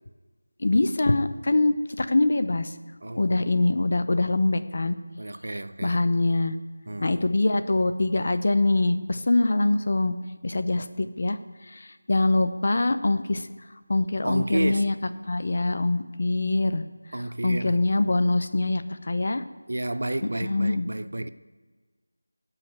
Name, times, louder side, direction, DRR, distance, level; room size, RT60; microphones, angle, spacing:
voice 1, 0.6-2.7 3.2-5.0 5.8-6.6 7.0-10.1 10.4-11.4 11.7-13.5 13.9-14.9 15.3-16.8 17.4-19.4 20.2-20.9, left 2 dB, 35° left, 0.7 m, -24 dB
voice 2, 3.0-3.6 5.2-6.0 6.9-7.2 14.2-14.9 17.1-17.8 19.7-21.3, right 1 dB, 55° right, 0.7 m, -31 dB
16.5 x 5.8 x 8.1 m
figure-of-eight pair, 175°, 0 cm